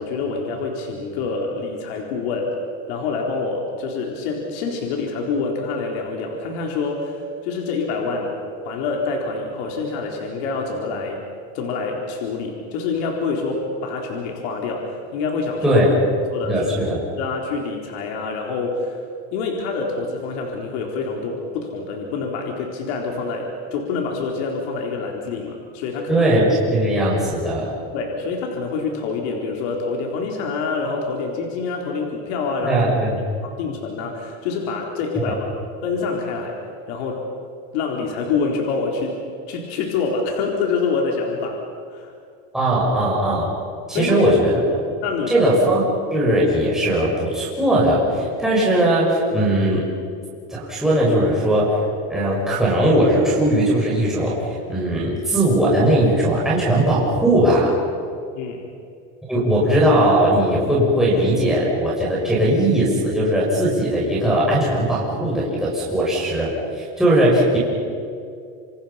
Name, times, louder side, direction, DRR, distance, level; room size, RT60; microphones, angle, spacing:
voice 1, 0.0-2.6 2.9-8.3 8.6-11.2 11.5-15.8 16.3-16.7 17.2-19.0 19.3-26.2 27.9-32.8 33.4-35.5 35.8-36.6 36.9-37.2 37.7-39.2 39.5-41.6 41.9-42.1 43.9-44.3 45.0-45.5 58.4-58.6, left 4 dB, 75° left, 0 dB, 4.2 m, -26 dB
voice 2, 16.4-17.0 26.1-27.8 32.6-33.1 42.5-43.5 43.9-44.5 45.3-49.8 50.5-51.8 52.1-57.7 59.3-67.6, right 1 dB, ahead, -7 dB, 6.4 m, -19 dB
27.5 x 27.5 x 5.8 m, 2.4 s
cardioid pair, 150°, 33 cm